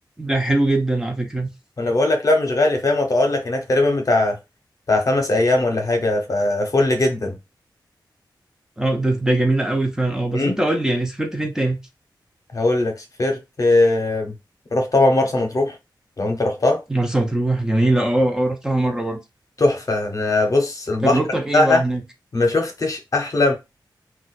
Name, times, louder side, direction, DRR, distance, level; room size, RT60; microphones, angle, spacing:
voice 1, 0.2-1.5 8.8-11.8 16.9-19.2 21.0-22.0, right 1 dB, 10° right, 0.5 m, -21 dB
voice 2, 1.8-4.4 4.9-7.4 10.3-10.6 12.5-14.3 14.7-15.8 16.2-16.8 19.6-21.2 21.5-21.8 22.3-23.6, left 2 dB, 45° left, 0.7 m, -19 dB
2.4 x 2.3 x 4.0 m
wide cardioid pair, 125°, 8 cm